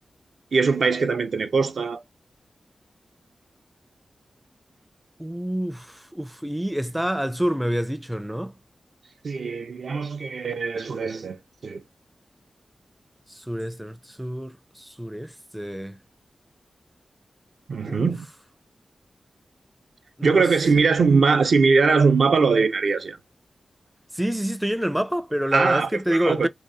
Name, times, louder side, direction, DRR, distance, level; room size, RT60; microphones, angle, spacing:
voice 1, 0.5-2.0 9.2-11.8 17.7-18.3 20.2-23.2 25.5-25.9 26.2-26.5, right 4 dB, 75° right, 0.5 m, -21 dB
voice 2, 5.2-8.5 13.3-16.0 17.9-18.1 20.2-20.4 24.1-26.5, equal, 5° right, 0.4 m, -27 dB
2.8 x 2.4 x 2.6 m
cardioid pair, 45°, 0 cm